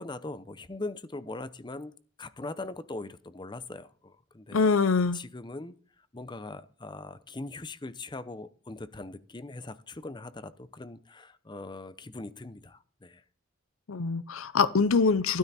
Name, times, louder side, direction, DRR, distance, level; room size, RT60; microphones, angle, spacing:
voice 1, 0.0-1.9 2.2-4.6 5.1-5.7 6.1-13.2, left 2 dB, 20° left, 0.7 m, -41 dB
voice 2, 4.5-5.2 13.9-15.4, left 4 dB, 90° left, 0.7 m, -24 dB
12.5 x 12.5 x 4.1 m
head